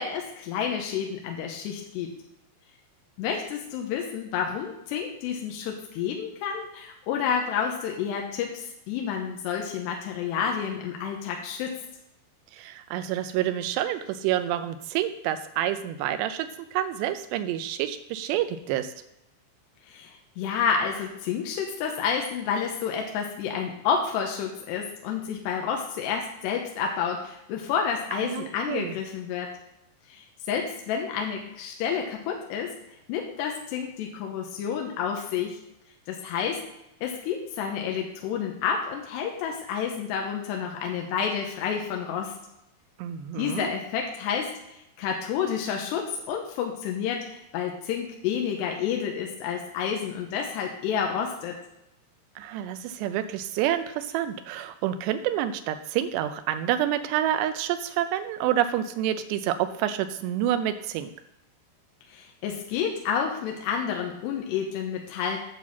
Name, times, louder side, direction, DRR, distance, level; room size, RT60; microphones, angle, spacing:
voice 1, 0.0-2.2 3.2-11.7 19.9-29.5 30.1-32.7 33.1-35.6 36.1-36.6 37.0-42.3 43.4-51.6 62.1-65.4, left 7 dB, 80° left, 1 dB, 2.9 m, -30 dB
voice 2, 12.5-18.9 28.2-28.9 43.0-43.7 52.4-61.1, right 11 dB, 80° right, 9 dB, 2.8 m, -28 dB
9.8 x 4.1 x 7.1 m, 0.86 s
omnidirectional pair, 5.0 m